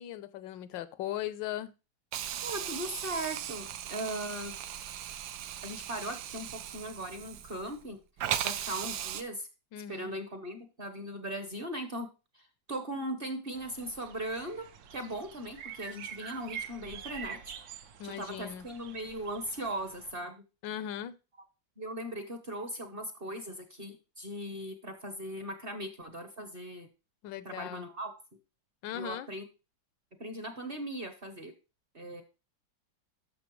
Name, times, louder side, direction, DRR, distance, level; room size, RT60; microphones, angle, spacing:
voice 1, 0.0-1.7 9.7-10.1 18.0-18.7 20.6-21.1 27.2-27.9 28.8-29.3, left 11 dB, 75° left, 15 dB, 1.2 m, -38 dB
Hiss, 2.1-7.8 8.2-9.2, right 11 dB, 80° right, 1.3 m, -38 dB
voice 2, 2.4-4.5 5.6-9.5 9.9-12.1 12.3-14.6 14.9-17.5 18.0-20.4 21.8-26.9 27.4-28.1 28.9-29.4 30.2-31.5 31.9-32.2, right 1 dB, 40° right, 6 dB, 0.9 m, -39 dB
sound 1, 13.5-20.1, right 8 dB, 65° right, 1.1 m, -46 dB
12.0 x 6.4 x 3.1 m, 0.30 s
omnidirectional pair, 2.1 m